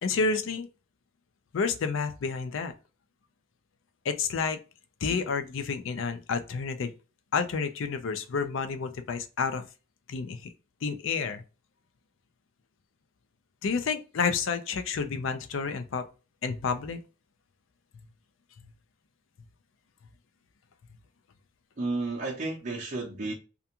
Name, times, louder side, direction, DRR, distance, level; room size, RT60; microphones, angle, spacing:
voice 1, 0.0-0.7 1.5-2.7 4.0-4.6 5.0-6.9 7.3-9.7 10.1-10.5 10.8-11.4 13.6-16.0 16.4-17.0, left 5 dB, 75° left, 0.4 m, -30 dB
voice 2, 21.8-23.3, right 2 dB, 40° right, 0.6 m, -32 dB
2.4 x 2.3 x 2.8 m
head